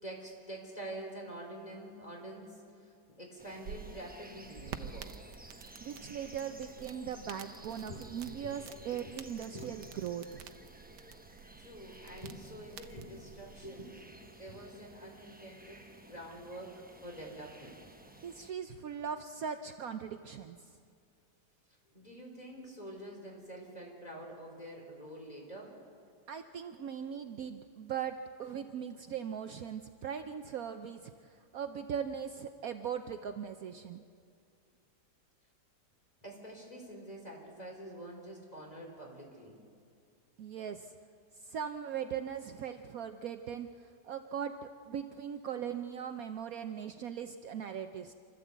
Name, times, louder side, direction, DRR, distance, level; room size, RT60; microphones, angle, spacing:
voice 1, 0.0-5.1 7.8-8.0 8.3-8.4 8.7-9.0 9.5-9.7 10.9-11.0 11.6-17.8 21.9-25.8 36.2-39.6, right 1 dB, 25° left, 0 dB, 4.0 m, -47 dB
sound 1, 3.4-18.5, right 1 dB, 10° right, 0.4 m, -55 dB
sound 2, 3.4-14.0, right 8 dB, 90° right, 1.4 m, -50 dB
voice 2, 5.8-10.4 18.2-20.6 26.3-34.0 40.4-41.0 41.4-48.1, right 8 dB, 65° right, 7 dB, 1.1 m, -39 dB
28.0 x 13.5 x 8.1 m, 2.3 s
omnidirectional pair, 1.8 m